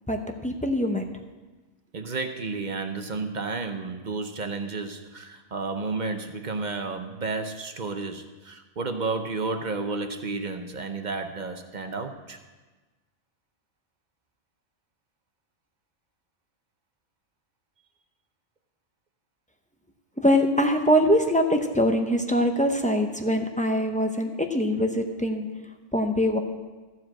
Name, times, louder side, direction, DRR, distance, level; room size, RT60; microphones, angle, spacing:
voice 1, 0.1-1.0 20.2-25.5 25.9-26.4, equal, 10° left, 4 dB, 0.5 m, -23 dB
voice 2, 1.9-12.4, right 3 dB, 45° right, 6 dB, 0.7 m, -32 dB
14.0 x 4.9 x 7.5 m, 1.3 s
omnidirectional pair, 1.3 m